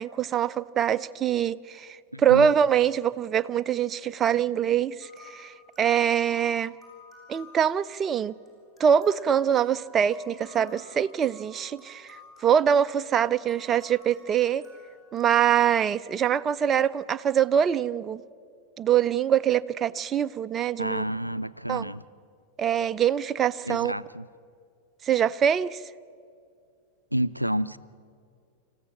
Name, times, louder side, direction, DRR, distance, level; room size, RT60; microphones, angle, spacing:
voice 1, 0.0-1.9 2.2-6.7 7.3-8.3 8.8-12.2 12.4-14.6 15.1-18.2 18.8-21.0 21.7-21.8 22.6-23.9 25.0-25.8, right 8 dB, 25° right, 0.5 m, -24 dB
voice 2, 2.1-2.5 20.8-22.0 23.6-24.3 27.1-27.8, equal, 90° right, 0.4 m, -29 dB
sound 1, 5.0-15.2, left 1 dB, 10° left, 7.0 m, -53 dB
26.5 x 15.0 x 7.4 m
figure-of-eight pair, 90°, 0 cm